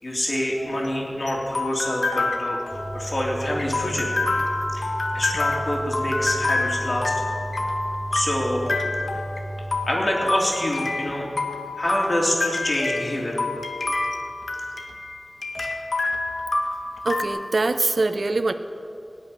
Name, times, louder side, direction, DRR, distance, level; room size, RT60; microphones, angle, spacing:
voice 1, 0.0-4.1 4.7-7.2 8.1-8.6 9.9-11.3 11.8-13.4, left 1 dB, 55° left, -2 dB, 3.3 m, -26 dB
sound 1, 0.6-17.3, left 2 dB, 75° left, 1.4 m, -28 dB
sound 2, 2.7-9.9, right 1 dB, 20° right, 1.9 m, -34 dB
voice 2, 17.0-18.5, right 3 dB, 70° right, 9 dB, 0.6 m, -23 dB
18.5 x 6.4 x 9.7 m, 2.7 s
wide cardioid pair, 65°, 0 cm